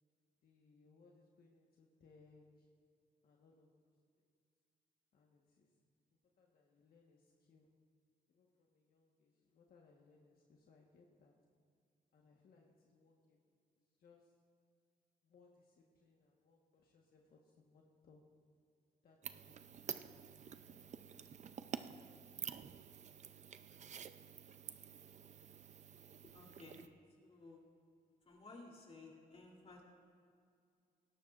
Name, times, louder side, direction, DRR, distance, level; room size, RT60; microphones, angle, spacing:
voice 1, 0.4-2.7 3.2-3.9 5.1-5.8 6.4-7.8 8.3-11.4 12.1-13.4 14.0-14.4 15.2-18.3 19.0-21.5, left 4 dB, 70° left, -1 dB, 1.4 m, -68 dB
sound 1, 19.2-26.9, right 7 dB, 45° right, 0.5 m, -50 dB
voice 2, 26.3-26.9 27.2-27.6 28.2-29.8, left 3 dB, 40° left, -1 dB, 3.2 m, -56 dB
19.0 x 17.0 x 2.5 m, 2.3 s
cardioid pair, 115°, 16 cm